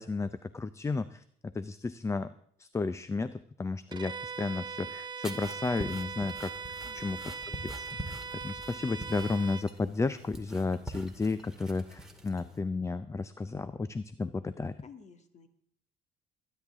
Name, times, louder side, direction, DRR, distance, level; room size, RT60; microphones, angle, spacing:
voice 1, 0.0-2.3 2.6-6.5 6.9-8.2 8.4-14.8, left 3 dB, 15° left, 14 dB, 0.5 m, -33 dB
Bowed string instrument, 3.9-9.7, right 5 dB, 25° right, 0.8 m, -40 dB
sound 1, 5.2-12.6, equal, 5° right, 1.9 m, -45 dB
voice 2, 6.8-7.5 14.8-15.5, left 5 dB, 45° left, 8 dB, 1.9 m, -54 dB
22.0 x 10.0 x 3.6 m, 0.64 s
cardioid pair, 110°, 17 cm